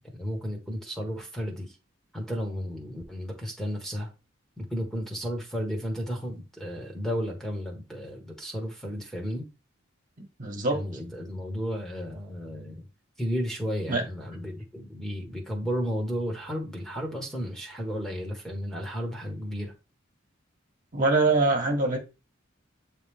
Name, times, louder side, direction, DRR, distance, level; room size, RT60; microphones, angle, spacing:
voice 1, 0.1-1.7 2.1-4.1 4.6-9.4 10.7-12.8 13.2-19.7, equal, ahead, 1.3 m, -33 dB
voice 2, 10.4-10.8 13.9-14.0 20.9-22.0, right 3 dB, 40° right, 1.5 m, -23 dB
8.2 x 3.3 x 3.5 m
head